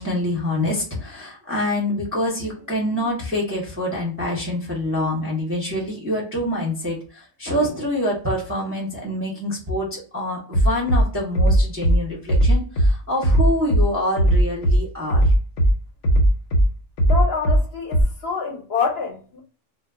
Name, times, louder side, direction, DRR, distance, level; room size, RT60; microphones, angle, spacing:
voice 1, 0.0-15.2, left 1 dB, 15° right, 0.5 m, -26 dB
Bass drum, 10.5-11.0 11.3-12.0 12.3-12.9 13.2-13.8 14.2-14.8 15.1-15.7 16.0-16.6 17.0-17.6 17.9-18.0, right 1 dB, 85° left, 1.0 m, -16 dB
voice 2, 17.1-19.4, left 5 dB, 60° left, 0.8 m, -26 dB
2.2 x 2.0 x 3.3 m
omnidirectional pair, 1.4 m